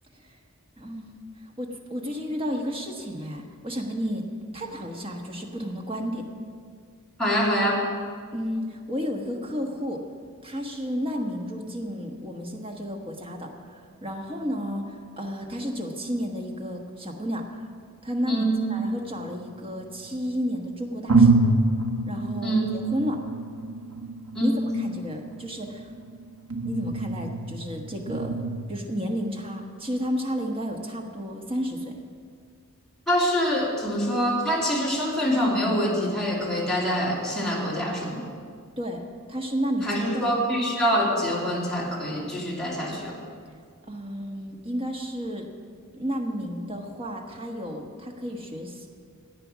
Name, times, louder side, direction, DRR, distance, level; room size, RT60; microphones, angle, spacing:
voice 1, 0.8-4.2 4.5-6.2 8.3-10.0 10.4-17.7 18.0-21.5 22.1-23.2 24.4-25.9 26.6-31.9 38.8-40.4 43.9-45.5 45.9-48.9, equal, 25° right, 2 dB, 1.3 m, -32 dB
voice 2, 7.2-7.8 18.3-18.6 22.4-22.7 24.3-24.6 33.1-38.2 39.8-43.1, equal, 5° left, -6 dB, 2.5 m, -25 dB
sound 1, 18.7-20.0 20.6-20.7 21.1-28.6, right 3 dB, 75° right, 1.2 m, -26 dB
14.0 x 8.8 x 6.2 m, 2.1 s
head